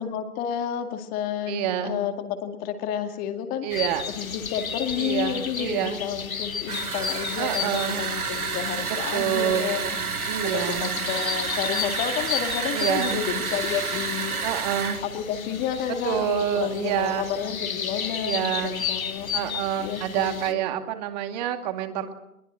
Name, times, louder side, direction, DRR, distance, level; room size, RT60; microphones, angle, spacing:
voice 1, 0.0-3.7 4.1-10.0 10.5-14.4 15.0-20.6, left 8 dB, 20° left, 7 dB, 2.3 m, -31 dB
voice 2, 1.5-2.0 3.6-4.0 5.0-6.0 7.4-8.0 9.1-10.9 12.7-13.2 14.4-15.0 16.0-17.2 18.2-18.7 19.3-22.1, right 10 dB, 30° right, 8 dB, 2.4 m, -27 dB
sound 1, 3.7-20.5, left 6 dB, 65° left, 2.2 m, -34 dB
sound 2, 6.7-15.0, right 5 dB, 75° right, 1.8 m, -30 dB
22.0 x 22.0 x 7.8 m, 0.84 s
figure-of-eight pair, 130°, 44 cm